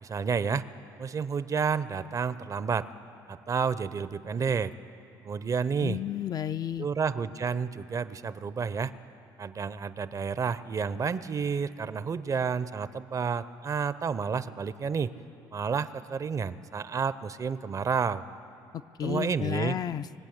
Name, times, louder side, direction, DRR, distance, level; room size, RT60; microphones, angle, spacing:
voice 1, 0.0-0.7 1.0-2.9 3.3-4.7 5.2-6.0 6.8-8.9 9.4-15.1 15.5-18.2 19.0-19.8, right 6 dB, 35° right, 15 dB, 0.5 m, -30 dB
voice 2, 5.8-6.9 19.0-20.1, left 10 dB, 40° left, 11 dB, 0.4 m, -32 dB
21.0 x 8.3 x 8.0 m, 2.8 s
hypercardioid pair, 65°, 10 cm